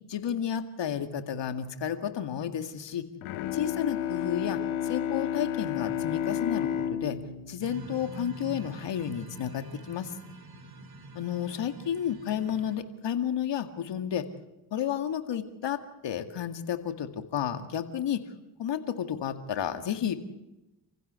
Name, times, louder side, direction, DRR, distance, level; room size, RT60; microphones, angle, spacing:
voice 1, 0.1-3.1 3.5-7.2 7.5-10.2 11.2-14.3 14.7-18.2 18.6-20.1, left 9 dB, 60° left, 8 dB, 2.2 m, -32 dB
Bowed string instrument, 3.2-8.8, left 10 dB, 85° left, 1.8 m, -32 dB
sound 1, 7.6-12.8, right 2 dB, 45° right, 3.5 m, -45 dB
28.5 x 15.5 x 8.2 m, 0.99 s
hypercardioid pair, 50°, 49 cm